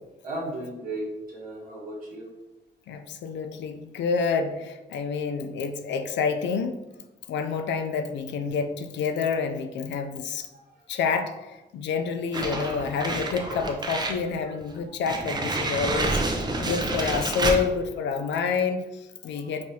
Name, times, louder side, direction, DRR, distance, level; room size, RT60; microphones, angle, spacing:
voice 1, 0.2-2.3 10.7-10.9 14.4-14.5 16.5-16.9 19.2-19.5, right 1 dB, 50° right, -4 dB, 1.3 m, -36 dB
voice 2, 2.9-6.8 7.3-10.5 10.9-19.6, left 5 dB, 75° left, 7 dB, 0.4 m, -28 dB
sound 1, 12.3-14.2 14.6-14.7 15.1-17.7, right 2 dB, 20° right, 0.5 m, -28 dB
4.7 x 2.6 x 2.7 m, 1.0 s
cardioid pair, 135°, 19 cm